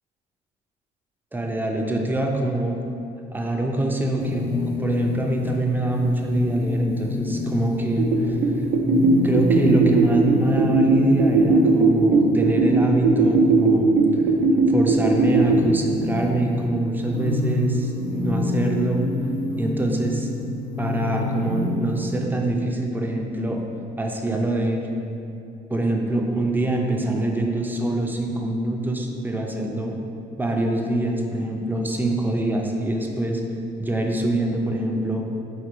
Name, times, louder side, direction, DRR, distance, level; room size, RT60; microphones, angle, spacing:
voice 1, 1.3-2.8 3.3-4.4 4.8-8.4 9.2-14.2 14.7-19.0 19.6-20.3 20.8-23.6 24.0-24.8 25.7-30.0 30.4-33.4 33.8-35.2, right 2 dB, 10° right, 1 dB, 0.4 m, -24 dB
sound 1, 4.2-22.2, left 2 dB, 80° left, 0.8 m, -28 dB
sound 2, 8.0-15.7, right 3 dB, 80° right, 0.4 m, -19 dB
4.8 x 2.9 x 3.0 m, 2.7 s
cardioid pair, 110°, 17 cm